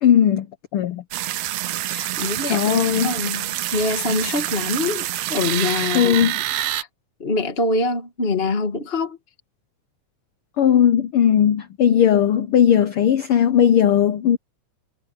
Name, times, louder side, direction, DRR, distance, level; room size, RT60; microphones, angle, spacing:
voice 1, 0.0-0.5 0.7-1.0 2.5-3.1 5.9-6.4 10.6-14.4, left 9 dB, 85° left, 1.2 m, -17 dB
sound 1, 1.1-6.8, right 14 dB, 75° right, 1.5 m, -26 dB
voice 2, 1.9-6.9 7.2-9.2, left 3 dB, 30° left, 1.2 m, -25 dB
omnidirectional pair, 3.6 m